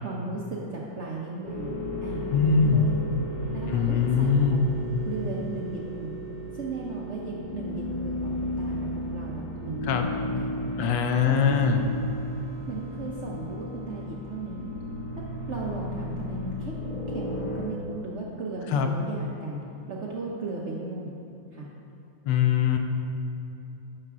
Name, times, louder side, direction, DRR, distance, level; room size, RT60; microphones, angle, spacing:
voice 1, 0.0-1.8 2.0-3.0 3.5-4.6 5.0-6.1 6.5-10.6 11.2-11.9 12.7-14.7 15.5-16.8 17.1-21.1 21.5-21.7, right 3 dB, 70° right, -4 dB, 0.7 m, -36 dB
sound 1, 1.4-17.6, left 1 dB, 25° left, 1.7 m, -34 dB
voice 2, 2.3-2.9 3.7-4.6 9.8-10.1 10.8-11.8 18.7-18.9 22.3-22.8, left 6 dB, 75° left, 5 dB, 1.3 m, -22 dB
8.9 x 5.9 x 3.6 m, 3.0 s
omnidirectional pair, 2.1 m